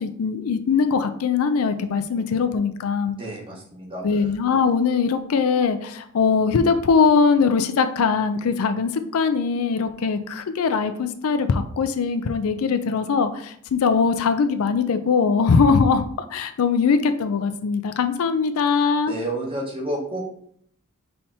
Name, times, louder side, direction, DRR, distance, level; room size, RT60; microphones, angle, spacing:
voice 1, 0.0-3.2 4.0-16.0 16.3-19.1, left 5 dB, 70° left, 9 dB, 0.4 m, -21 dB
voice 2, 3.2-4.3 19.1-20.2, right 1 dB, 25° right, -2 dB, 1.2 m, -30 dB
5.6 x 3.3 x 2.7 m, 0.65 s
head